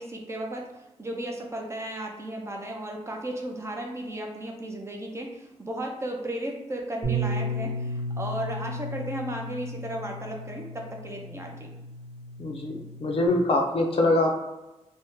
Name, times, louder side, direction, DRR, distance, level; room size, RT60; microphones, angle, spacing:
voice 1, 0.0-11.7, right 1 dB, 25° right, 1 dB, 0.4 m, -35 dB
Bass guitar, 7.0-13.3, right 1 dB, 80° right, 1.0 m, -34 dB
voice 2, 12.4-14.3, left 2 dB, 50° left, 2 dB, 0.4 m, -24 dB
2.6 x 2.1 x 3.5 m, 0.99 s
wide cardioid pair, 170°, 12 cm